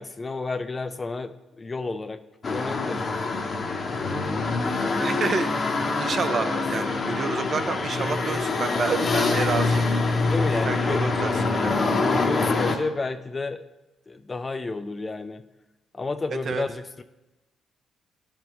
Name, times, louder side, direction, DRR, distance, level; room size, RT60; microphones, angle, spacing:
voice 1, 0.0-2.2 2.5-3.1 6.3-6.4 10.2-11.0 11.7-13.6 14.1-15.4 15.9-17.0, left 3 dB, 25° left, 10 dB, 0.4 m, -31 dB
sound 1, 2.4-12.8, left 3 dB, 40° left, 0.9 m, -25 dB
voice 2, 5.0-5.7 5.9-9.9 10.5-11.8 16.4-16.6, right 5 dB, 50° right, 9 dB, 0.6 m, -29 dB
12.5 x 5.2 x 3.0 m, 1.0 s
cardioid pair, 90°, 0 cm